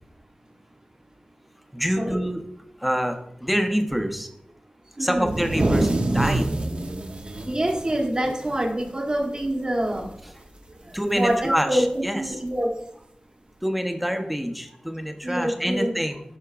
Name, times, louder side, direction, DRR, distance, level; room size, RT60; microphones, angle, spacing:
voice 1, 1.7-2.4 2.8-4.3 5.0-6.5 10.9-12.4 13.6-16.2, equal, ahead, 5 dB, 0.9 m, -26 dB
voice 2, 5.0-5.3 6.9-7.0 7.5-10.1 11.1-12.7 15.2-15.9, right 1 dB, 35° right, 3 dB, 1.2 m, -26 dB
sound 1, 5.2-8.9 9.2-9.4 9.7-10.2 11.3-11.4 12.5-12.6, right 2 dB, 50° right, 0.9 m, -26 dB
12.5 x 4.4 x 2.5 m, 0.72 s
wide cardioid pair, 75°, 3 cm